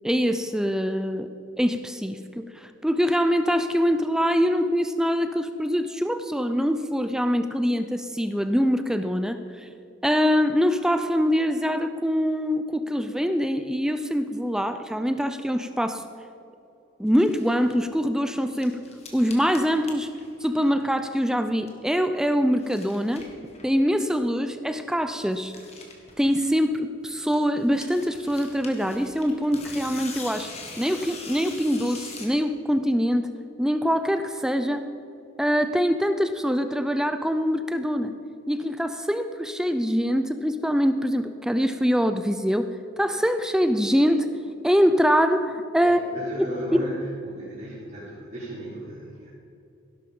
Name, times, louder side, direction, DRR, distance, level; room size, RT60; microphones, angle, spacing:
voice 1, 0.0-9.7 10.0-16.1 17.0-18.8 19.1-20.1 20.4-23.3 23.6-25.5 26.2-30.5 30.8-33.3 33.6-34.9 35.4-38.1 38.5-42.7 43.0-44.3 44.6-46.0 46.4-46.5 46.7-46.9, equal, 5° right, 9 dB, 0.5 m, -24 dB
sound 1, 17.1-17.7 18.2-21.0 21.3-21.9 22.3-23.8 24.2-24.3 24.5-24.6 24.8-24.9 25.2-26.9 27.3-32.4, left 4 dB, 30° left, 1.9 m, -43 dB
voice 2, 45.8-49.3, equal, 35° right, -12 dB, 4.2 m, -36 dB
17.0 x 11.5 x 5.4 m, 2.8 s
head